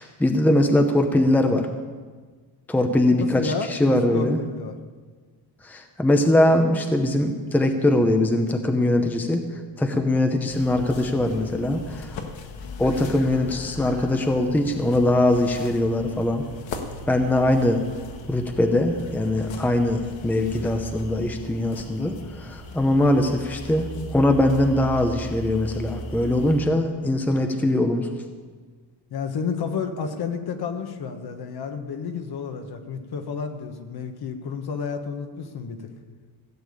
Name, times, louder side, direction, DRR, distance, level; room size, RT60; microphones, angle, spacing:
voice 1, 0.0-1.7 2.7-4.4 5.6-9.5 9.8-12.1 12.8-16.5 17.1-17.8 18.3-28.1, left 1 dB, 5° left, 5 dB, 0.7 m, -21 dB
voice 2, 3.4-4.8 26.2-26.4 29.1-35.8, left 5 dB, 55° left, 6 dB, 1.4 m, -31 dB
sound 1, 10.5-26.6, left 2 dB, 85° left, 1.7 m, -38 dB
16.0 x 7.0 x 8.5 m, 1.5 s
cardioid pair, 170°, 44 cm